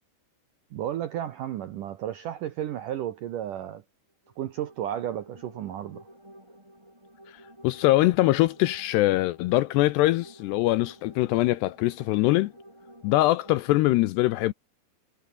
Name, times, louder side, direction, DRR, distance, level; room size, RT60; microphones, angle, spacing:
voice 1, 0.7-3.8 4.4-6.1, right 11 dB, 75° right, 1.9 m, -33 dB
sound 1, 4.2-13.7, right 1 dB, 5° right, 7.2 m, -51 dB
voice 2, 7.6-12.5 13.0-14.5, left 18 dB, 85° left, 2.5 m, -23 dB
omnidirectional pair, 5.3 m